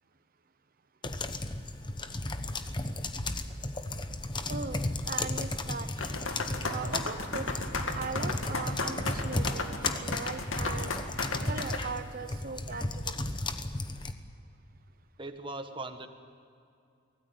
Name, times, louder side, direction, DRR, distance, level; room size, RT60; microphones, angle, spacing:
sound 1, 1.0-14.1, left 2 dB, 25° left, 1.0 m, -34 dB
voice 1, 4.5-5.9 6.7-7.5 7.9-11.0 11.5-13.3, right 4 dB, 45° right, 10 dB, 0.9 m, -39 dB
sound 2, 6.0-11.8, left 3 dB, 75° left, 2.2 m, -34 dB
voice 2, 15.2-16.1, right 2 dB, 25° right, 7 dB, 1.5 m, -39 dB
24.5 x 17.5 x 9.2 m, 2.5 s
head